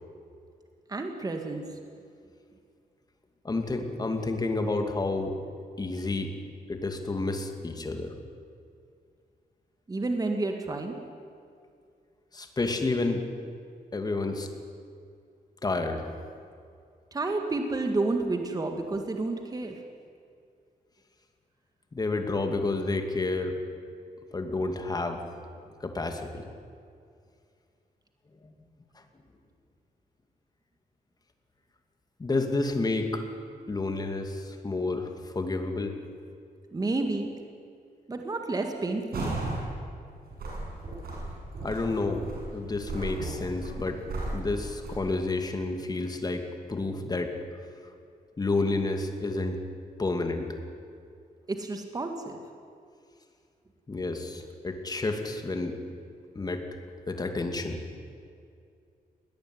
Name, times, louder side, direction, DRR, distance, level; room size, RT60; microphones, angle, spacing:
voice 1, 0.9-1.7 9.9-11.0 17.1-19.8 36.7-37.3 38.1-39.4 51.5-52.4, right 2 dB, 25° right, 4 dB, 1.9 m, -30 dB
voice 2, 3.4-5.4 5.8-6.3 6.7-8.1 12.3-13.3 13.9-14.5 15.6-16.0 21.9-23.5 24.3-25.2 25.8-26.5 28.4-28.5 32.2-33.2 33.7-36.0 41.6-42.2 42.5-44.0 44.3-47.3 48.4-49.6 50.0-50.5 53.9-55.8 56.3-56.6 57.1-57.8, left 3 dB, 25° left, 5 dB, 2.5 m, -30 dB
sound 1, 39.1-39.7 40.1-45.0, right 2 dB, 80° right, 7.2 m, -35 dB
21.0 x 18.5 x 9.7 m, 2.4 s
wide cardioid pair, 145°, 16 cm